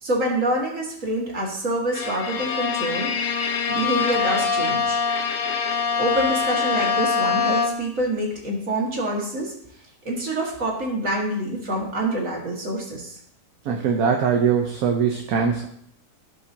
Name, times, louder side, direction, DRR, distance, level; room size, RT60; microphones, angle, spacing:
voice 1, 0.0-3.1 3.7-5.0 6.0-9.5 10.0-13.2, right 1 dB, 55° right, -2 dB, 2.4 m, -26 dB
Bowed string instrument, 1.9-8.0, left 5 dB, 50° left, 0.8 m, -24 dB
voice 2, 13.6-15.7, right 6 dB, 70° right, 3 dB, 1.3 m, -21 dB
16.0 x 5.3 x 2.8 m, 0.67 s
omnidirectional pair, 1.6 m